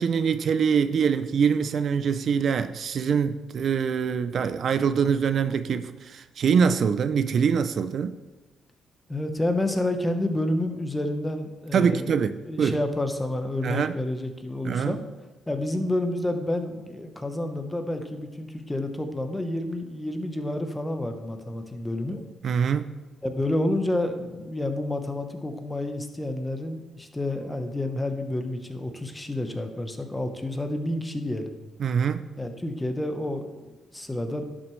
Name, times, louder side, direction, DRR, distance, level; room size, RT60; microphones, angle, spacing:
voice 1, 0.0-8.2 11.7-12.8 13.6-13.9 14.6-15.0 22.4-22.9 31.8-32.3, right 6 dB, 55° right, 0.4 m, -24 dB
voice 2, 9.1-12.2 12.4-15.0 15.5-22.2 23.2-31.6 32.4-34.4, left 1 dB, 10° left, 0.9 m, -29 dB
11.0 x 6.2 x 3.2 m
cardioid pair, 90°, 0 cm